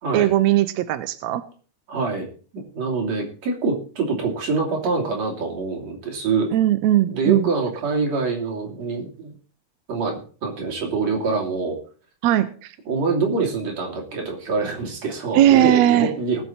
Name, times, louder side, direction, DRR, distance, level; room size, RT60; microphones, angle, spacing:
voice 1, 0.1-1.4 6.5-7.5 12.2-12.7 15.3-16.1, right 13 dB, 80° right, 10 dB, 1.6 m, -18 dB
voice 2, 1.9-2.3 2.5-6.5 7.1-9.3 9.9-11.8 12.9-16.4, right 4 dB, 50° right, 0 dB, 3.8 m, -25 dB
19.5 x 6.9 x 4.4 m, 0.40 s
omnidirectional pair, 3.9 m